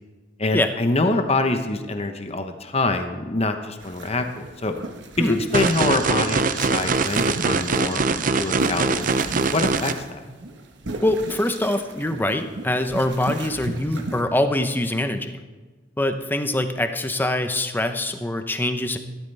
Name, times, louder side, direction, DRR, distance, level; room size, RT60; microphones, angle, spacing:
voice 1, 0.4-4.7 5.2-10.2, left 2 dB, 35° left, 7 dB, 1.0 m, -25 dB
sound 1, 3.8-14.2, right 2 dB, 70° right, 1.3 m, -36 dB
sound 2, 5.5-9.9, right 4 dB, 45° right, 0.6 m, -22 dB
voice 2, 11.0-15.4 16.0-19.0, left 1 dB, 10° left, 7 dB, 0.7 m, -24 dB
15.5 x 13.0 x 3.4 m, 1.3 s
head